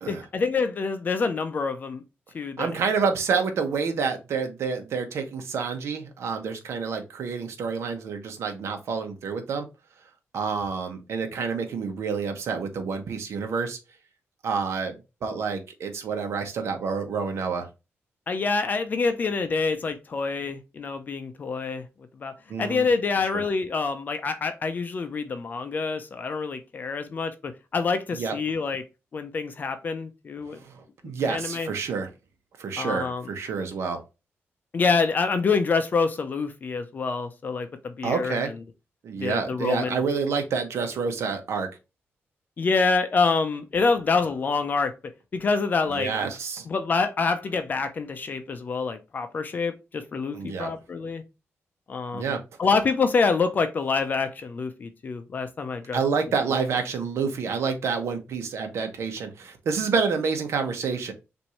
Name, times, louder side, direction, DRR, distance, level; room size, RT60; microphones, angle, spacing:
voice 1, 0.1-2.0 2.3-2.7 18.3-21.9 22.1-28.8 29.1-30.6 31.0-31.7 32.8-33.3 34.7-38.4 39.1-40.0 42.6-44.9 45.3-46.2 46.7-51.2 51.9-56.0, left 4 dB, 40° left, 0.5 m, -26 dB
voice 2, 2.6-9.7 10.3-13.8 14.4-14.9 15.2-17.7 22.5-22.9 23.2-23.4 28.1-28.3 30.5-32.1 32.6-34.0 38.0-38.5 39.0-41.7 45.9-46.6 50.3-50.7 52.1-52.4 55.9-61.1, right 5 dB, 75° right, 1.0 m, -28 dB
5.9 x 2.7 x 3.1 m
wide cardioid pair, 140°, 5 cm